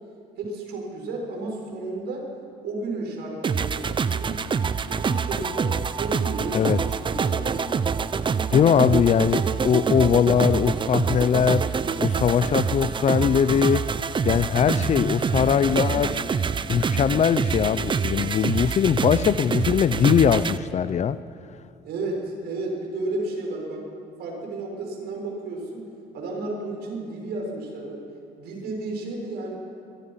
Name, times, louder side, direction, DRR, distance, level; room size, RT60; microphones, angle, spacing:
voice 1, 0.4-2.3 2.6-4.4 4.8-6.6 7.0-7.6 21.8-23.9 24.2-28.0 28.4-29.6, right 2 dB, 75° right, 0 dB, 6.3 m, -32 dB
sound 1, 3.4-20.6, right 6 dB, 30° right, 0.7 m, -26 dB
voice 2, 8.5-13.9 14.3-16.2 16.7-21.2, left 8 dB, 40° left, 16 dB, 0.6 m, -21 dB
sound 2, 13.7-18.8, left 3 dB, 70° left, 2.7 m, -38 dB
23.5 x 22.5 x 5.8 m, 2.6 s
cardioid pair, 110°, 17 cm